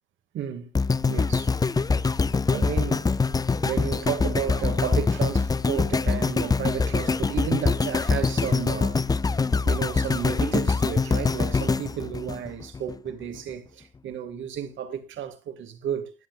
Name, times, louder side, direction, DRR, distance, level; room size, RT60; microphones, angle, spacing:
voice 1, 0.3-0.7 1.1-1.5 2.5-3.1 3.6-9.0 9.6-16.1, right 9 dB, 75° right, 2.2 m, -32 dB
sound 1, 0.7-12.9 13.5-13.6, left 4 dB, 20° left, 0.5 m, -24 dB
21.0 x 8.0 x 2.4 m
cardioid pair, 90°, 20 cm